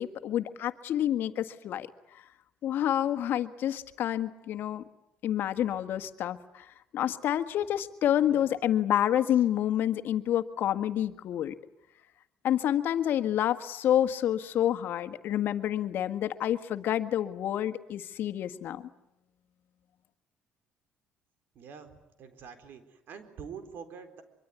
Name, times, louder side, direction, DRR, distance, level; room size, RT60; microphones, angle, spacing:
voice 1, 0.0-1.9 2.6-4.8 5.2-6.6 6.9-11.6 12.4-18.8, left 11 dB, 65° left, 10 dB, 1.7 m, -28 dB
voice 2, 21.5-24.2, right 6 dB, 65° right, 9 dB, 4.2 m, -46 dB
24.0 x 24.0 x 9.7 m, 0.86 s
cardioid pair, 110°, 4 cm